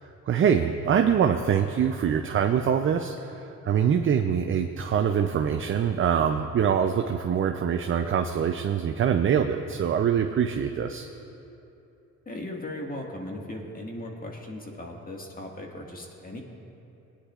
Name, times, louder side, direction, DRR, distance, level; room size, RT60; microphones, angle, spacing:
voice 1, 0.3-11.1, right 8 dB, 45° right, 5 dB, 0.5 m, -24 dB
voice 2, 12.3-16.4, left 1 dB, 30° left, 0 dB, 1.8 m, -37 dB
21.0 x 9.9 x 2.5 m, 2.9 s
cardioid pair, 90°, 30 cm